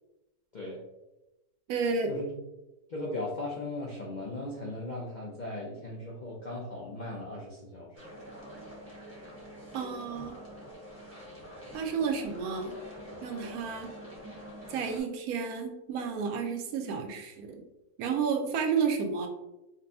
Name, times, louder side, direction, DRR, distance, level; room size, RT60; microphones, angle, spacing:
voice 1, 1.7-2.1 9.7-10.4 11.7-12.7 13.2-13.9 14.7-17.6 18.0-19.3, right 6 dB, 75° right, 4 dB, 1.0 m, -31 dB
voice 2, 2.9-7.9, left 2 dB, 60° left, -3 dB, 0.4 m, -37 dB
sound 1, 8.0-15.0, equal, 10° right, 0.8 m, -46 dB
5.2 x 2.2 x 2.6 m, 0.96 s
omnidirectional pair, 1.7 m